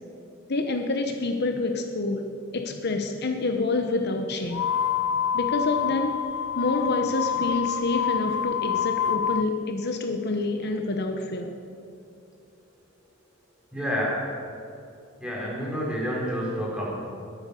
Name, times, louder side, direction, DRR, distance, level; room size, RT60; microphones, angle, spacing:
voice 1, 0.5-2.2 2.5-4.7 5.3-6.2 6.6-11.5, left 3 dB, 50° left, 5 dB, 0.9 m, -27 dB
sound 1, 4.5-9.5, left 8 dB, 90° left, 0.5 m, -27 dB
voice 2, 13.7-14.2 15.2-16.9, equal, 5° right, -5 dB, 4.3 m, -28 dB
22.0 x 8.4 x 6.8 m, 2.6 s
head